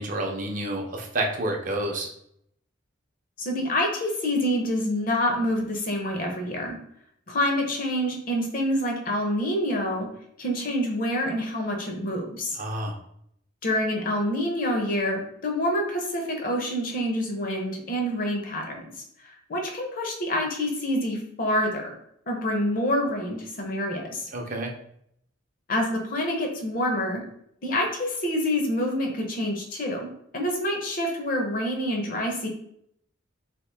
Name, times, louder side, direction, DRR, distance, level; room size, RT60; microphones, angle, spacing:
voice 1, 0.0-2.1 12.5-12.9 24.3-24.7, right 1 dB, 40° right, 1 dB, 0.5 m, -29 dB
voice 2, 3.4-6.8 7.3-10.1 10.4-12.6 13.6-18.8 19.2-21.9 22.3-24.3 25.7-27.2 27.6-32.5, left 1 dB, 45° left, 2 dB, 0.6 m, -27 dB
2.9 x 2.5 x 3.3 m, 0.71 s
head